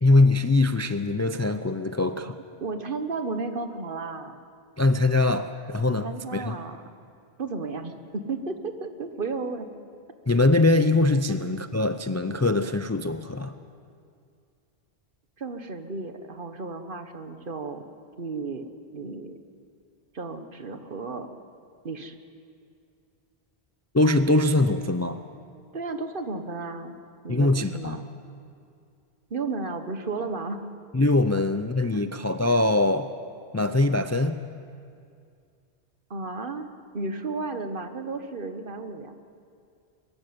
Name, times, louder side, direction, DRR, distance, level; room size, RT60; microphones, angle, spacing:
voice 1, 0.0-2.4 4.8-6.5 10.3-13.5 23.9-25.2 27.3-28.0 30.9-33.1 33.5-34.4, left 2 dB, 20° left, 10 dB, 0.4 m, -22 dB
voice 2, 2.6-4.4 5.9-6.8 7.4-9.7 15.4-17.8 18.2-18.6 18.9-19.4 20.1-21.3 21.8-22.2 25.7-27.0 27.2-28.1 29.3-30.7 31.9-32.1 36.1-36.7 36.9-39.1, right 3 dB, 55° right, 8 dB, 1.3 m, -33 dB
22.0 x 15.0 x 9.5 m, 2.4 s
omnidirectional pair, 1.1 m